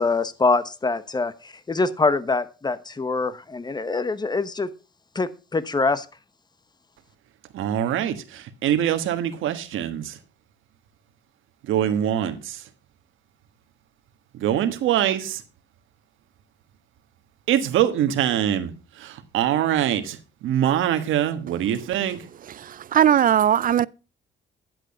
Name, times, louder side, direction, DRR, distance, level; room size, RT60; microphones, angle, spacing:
voice 1, 0.0-4.7 5.1-6.0, left 3 dB, 20° left, 1.1 m, -24 dB
voice 2, 7.5-10.1 11.7-12.6 14.3-15.4 17.5-18.7 19.0-20.2 20.4-22.2, right 10 dB, 85° right, 1.4 m, -23 dB
voice 3, 22.6-23.9, right 10 dB, 45° right, 0.4 m, -19 dB
11.0 x 7.8 x 5.3 m
cardioid pair, 90°, 20 cm